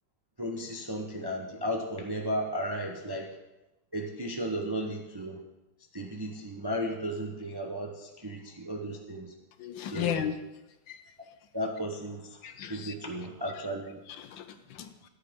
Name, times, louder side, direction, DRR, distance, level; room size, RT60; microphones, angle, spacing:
voice 1, 0.4-3.3 3.9-5.4 5.9-9.3 9.9-10.2 11.2-11.3 11.5-12.4 12.7-14.0, equal, 25° right, 2 dB, 0.5 m, -34 dB
voice 2, 9.6-10.3 10.9-11.0 12.4-12.9 14.1-15.1, left 9 dB, 75° left, 9 dB, 1.5 m, -35 dB
13.5 x 10.5 x 3.7 m, 1.0 s
omnidirectional pair, 2.1 m